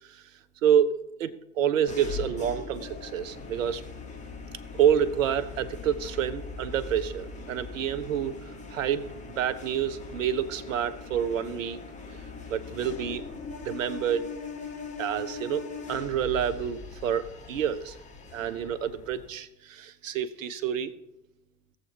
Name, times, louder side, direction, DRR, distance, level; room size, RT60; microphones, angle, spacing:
voice 1, 0.6-3.8 4.8-8.3 8.7-9.0 9.4-11.8 12.5-13.2 13.6-14.3 15.0-18.0 18.3-20.9, right 9 dB, 70° right, 14 dB, 0.8 m, -28 dB
sound 1, 1.9-19.3, left 5 dB, 15° left, 1.8 m, -41 dB
17.5 x 7.4 x 2.9 m, 0.90 s
figure-of-eight pair, 80°, 41 cm